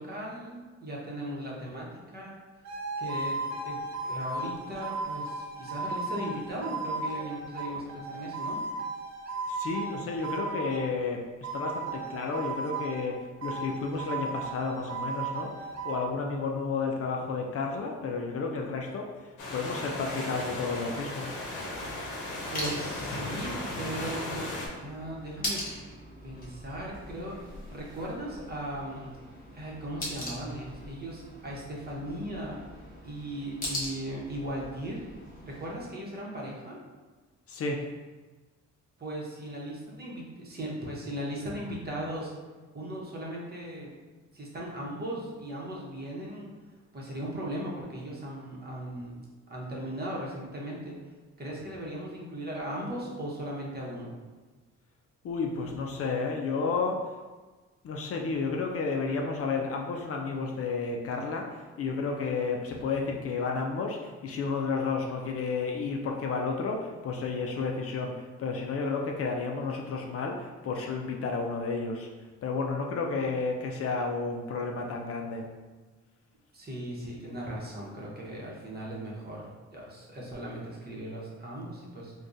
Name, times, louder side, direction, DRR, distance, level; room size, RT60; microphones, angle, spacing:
voice 1, 0.0-2.4 3.0-8.6 22.5-24.5 24.8-26.0 26.2-29.2 29.5-32.6 33.0-35.0 35.4-36.8 39.0-42.3 42.7-43.9 44.3-46.5 46.9-50.9 51.4-54.1 76.5-82.1, right 1 dB, 30° right, -4 dB, 0.9 m, -38 dB
sound 1, 2.6-10.9 11.4-13.1 13.4-16.0, right 3 dB, 60° right, 0.6 m, -35 dB
voice 2, 9.5-11.3 11.5-21.4 37.5-37.9 55.2-57.0 57.8-72.1 72.4-75.5, left 4 dB, 50° left, 1 dB, 0.4 m, -32 dB
sound 2, 19.4-24.7, left 2 dB, 90° left, 0.7 m, -36 dB
sound 3, 21.6-35.8, left 1 dB, 30° left, 1.0 m, -41 dB
3.5 x 2.3 x 2.6 m, 1.3 s
cardioid pair, 90°, 30 cm